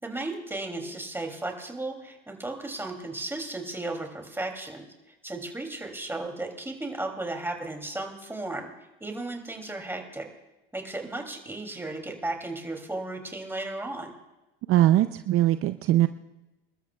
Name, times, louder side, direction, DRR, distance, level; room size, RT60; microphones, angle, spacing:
voice 1, 0.0-4.8 5.2-8.7 9.0-10.3 10.7-14.1, right 2 dB, 10° right, 3 dB, 2.8 m, -35 dB
voice 2, 14.7-16.1, right 14 dB, 50° right, 11 dB, 0.6 m, -21 dB
27.5 x 13.0 x 2.3 m, 1.0 s
supercardioid pair, 90°, 30 cm